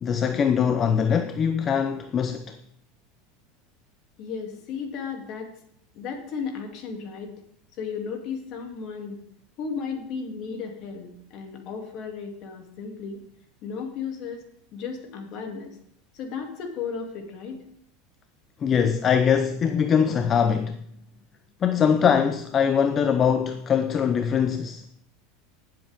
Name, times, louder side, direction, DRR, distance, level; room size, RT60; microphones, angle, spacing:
voice 1, 0.0-2.6 18.6-20.9 21.6-24.8, left 7 dB, 30° left, 0.6 m, -22 dB
voice 2, 4.2-5.5 5.9-7.3 7.8-9.2 9.6-13.2 13.6-14.4 14.7-15.8 16.1-17.6, left 5 dB, 50° left, 2.7 m, -34 dB
18.5 x 7.6 x 3.6 m
supercardioid pair, 115°, 0 cm